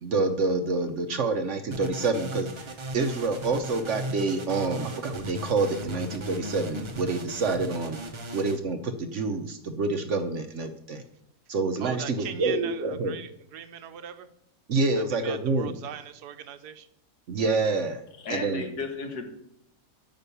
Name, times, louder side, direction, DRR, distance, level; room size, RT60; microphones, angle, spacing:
voice 1, 0.0-8.0 8.3-11.0 11.5-13.2 14.7-15.8 17.3-18.0 18.3-18.6, right 3 dB, 55° right, 7 dB, 0.9 m, -27 dB
sound 1, 1.7-8.6, right 1 dB, 40° right, 0.4 m, -37 dB
voice 2, 11.8-14.3 15.0-16.9, right 9 dB, 80° right, 11 dB, 1.2 m, -40 dB
voice 3, 18.2-19.2, left 3 dB, 70° left, 5 dB, 1.8 m, -33 dB
9.0 x 5.1 x 6.9 m, 0.75 s
omnidirectional pair, 1.7 m